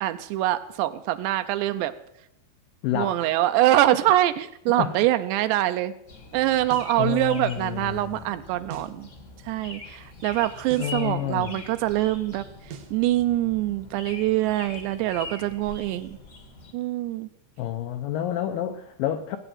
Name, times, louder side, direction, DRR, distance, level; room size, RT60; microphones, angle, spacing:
voice 1, 0.0-1.9 2.9-5.9 6.3-9.1 9.4-12.5 12.9-16.2 16.7-17.3, right 14 dB, 80° right, 10 dB, 2.8 m, -24 dB
voice 2, 2.8-3.3 4.8-5.0 7.0-8.2 10.8-11.6 17.6-19.4, left 11 dB, 80° left, 7 dB, 2.0 m, -29 dB
sound 1, 6.1-16.7, left 3 dB, 50° left, 0.8 m, -43 dB
sound 2, 6.7-7.0 8.7-9.0 10.7-11.0 12.7-13.0, right 8 dB, 65° right, 1.7 m, -41 dB
18.0 x 8.9 x 7.7 m, 0.78 s
omnidirectional pair, 5.1 m